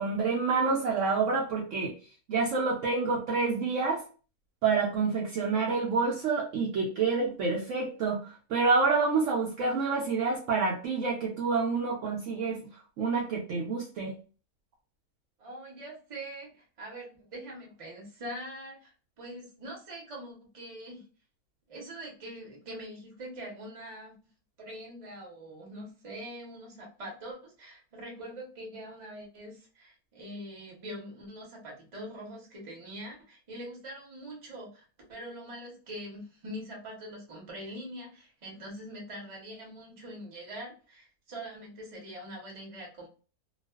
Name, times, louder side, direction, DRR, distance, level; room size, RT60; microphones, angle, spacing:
voice 1, 0.0-1.9 2.3-4.0 4.6-12.6 13.0-14.1, right 4 dB, 70° right, -3 dB, 0.8 m, -28 dB
voice 2, 15.4-21.1 21.7-24.1 24.6-43.1, right 1 dB, 30° right, -2 dB, 0.7 m, -43 dB
2.4 x 2.3 x 2.2 m, 0.36 s
omnidirectional pair, 1.6 m